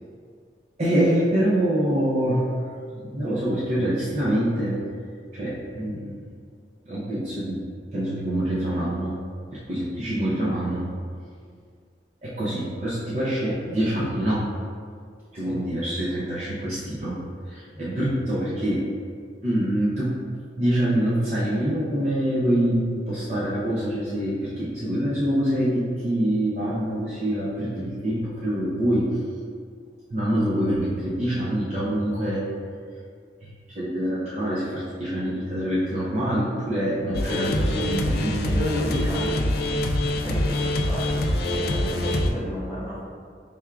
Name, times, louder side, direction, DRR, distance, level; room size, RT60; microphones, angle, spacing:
voice 1, 0.8-4.8 5.3-6.2 6.9-7.6 7.9-9.2 9.5-10.9 12.2-14.4 15.3-17.2 17.5-18.8 19.4-20.2 20.6-29.2 30.1-32.4 33.4-38.6, right 1 dB, 40° right, -8 dB, 0.6 m, -25 dB
sound 1, 37.1-42.3, left 1 dB, 55° left, 0.3 m, -24 dB
voice 2, 38.5-39.5 40.2-43.1, equal, 15° right, -11 dB, 1.3 m, -32 dB
4.4 x 3.4 x 2.4 m, 2.1 s
head